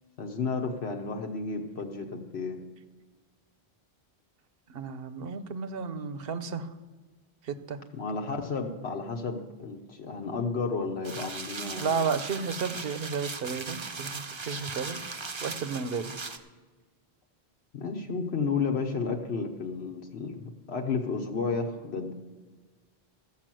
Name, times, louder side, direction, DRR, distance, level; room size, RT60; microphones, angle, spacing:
voice 1, 0.2-2.6 7.9-12.0 17.7-22.1, left 4 dB, 80° left, 1 dB, 1.2 m, -32 dB
voice 2, 4.7-6.7 7.4-7.8 11.7-15.0 15.4-16.1, right 5 dB, 65° right, 11 dB, 0.9 m, -33 dB
sound 1, 11.0-16.4, right 4 dB, 30° right, 0.6 m, -38 dB
14.0 x 5.8 x 7.6 m, 1.3 s
omnidirectional pair, 1.1 m